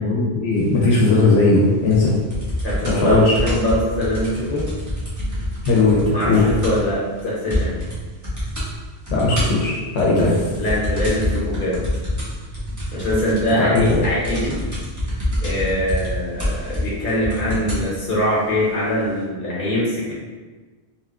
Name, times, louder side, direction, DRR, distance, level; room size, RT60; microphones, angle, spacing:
voice 1, 0.0-2.1 2.9-3.3 5.7-6.4 9.1-10.3 13.6-14.0, left 3 dB, 85° left, -4 dB, 0.9 m, -17 dB
sound 1, 1.9-6.9 7.2-7.3 7.5-8.0 8.2-8.7 9.1-17.9 18.7-18.8, left 1 dB, 20° right, 0.6 m, -26 dB
voice 2, 2.6-4.6 6.1-7.7 10.2-10.3 10.6-11.8 12.9-14.6 15.4-20.1, equal, 55° left, -7 dB, 1.0 m, -23 dB
2.8 x 2.1 x 2.4 m, 1.3 s
omnidirectional pair, 1.1 m